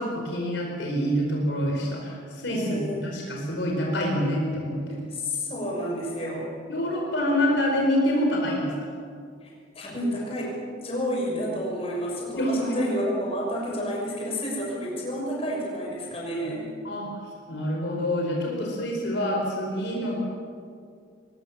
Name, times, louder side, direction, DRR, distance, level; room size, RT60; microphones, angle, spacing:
voice 1, 0.0-2.6 2.9-5.0 6.7-8.8 12.4-12.5 16.8-17.1 17.5-20.2, equal, 70° left, -1 dB, 4.7 m, -26 dB
voice 2, 2.5-3.1 5.1-6.5 9.4-16.7, equal, 30° left, -3 dB, 6.5 m, -30 dB
22.5 x 20.5 x 7.4 m, 2.2 s
head